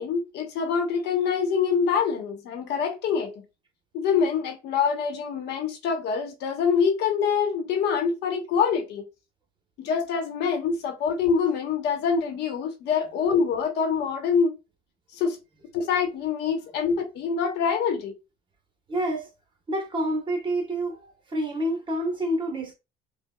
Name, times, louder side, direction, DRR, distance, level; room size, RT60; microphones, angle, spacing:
voice 1, 0.0-3.3 3.9-9.0 9.8-14.5 15.1-15.4 15.7-18.1, left 6 dB, 70° left, 1.0 m, -25 dB
voice 2, 18.9-19.3 19.7-22.7, right 1 dB, 25° right, 1.0 m, -28 dB
4.7 x 2.2 x 2.2 m
supercardioid pair, 90°, 18 cm